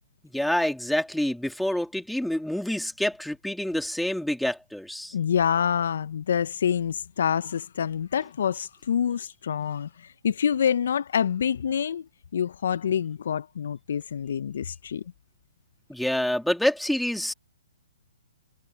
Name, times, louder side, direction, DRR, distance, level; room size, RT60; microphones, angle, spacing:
voice 1, 0.3-5.1 15.9-17.3, left 1 dB, ahead, 3.1 m, -27 dB
voice 2, 5.1-12.1 12.3-15.0, left 8 dB, 65° left, 1.1 m, -26 dB
figure-of-eight pair, 125°, 0 cm